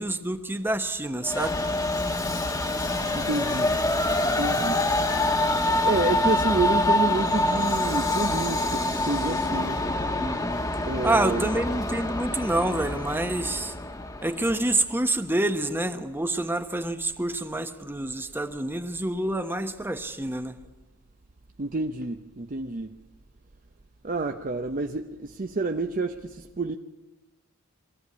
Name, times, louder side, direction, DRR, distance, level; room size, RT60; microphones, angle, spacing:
voice 1, 0.0-1.6 10.2-10.7 11.0-13.7 14.2-20.5, right 1 dB, 10° right, 1.0 m, -27 dB
Train, 1.2-14.7, left 2 dB, 15° left, 1.2 m, -26 dB
voice 2, 3.1-3.7 4.2-4.8 5.8-9.8 10.9-11.6 21.6-23.0 24.0-26.8, right 3 dB, 40° right, 0.7 m, -29 dB
22.0 x 14.5 x 8.5 m
head